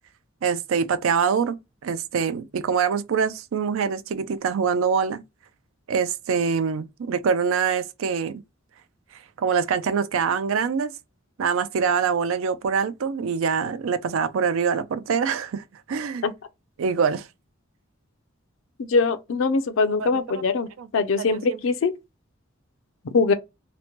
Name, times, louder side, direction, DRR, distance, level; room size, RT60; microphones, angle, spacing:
voice 1, 0.4-1.6 1.8-5.2 5.9-8.4 9.4-10.9 11.4-16.2 16.8-17.3 20.0-20.2 20.8-20.9 21.3-21.6, right 6 dB, 80° right, 0.4 m, -24 dB
voice 2, 18.8-20.7 20.9-21.9 23.1-23.3, left 4 dB, 65° left, 0.4 m, -22 dB
2.9 x 2.1 x 2.9 m
head